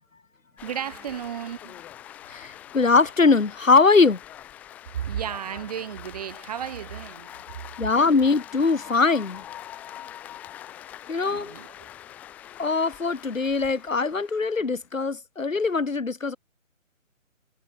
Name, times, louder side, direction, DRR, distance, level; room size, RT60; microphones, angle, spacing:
sound 1, 0.6-14.9, left 11 dB, 5° left, 1.0 m, -44 dB
voice 1, 0.6-1.8 4.9-7.3 11.2-11.9, right 9 dB, 30° right, 2.8 m, -34 dB
voice 2, 2.3-4.2 7.8-9.4 11.1-11.5 12.6-16.4, left 4 dB, 70° left, 2.4 m, -21 dB
figure-of-eight pair, 150°, 40 cm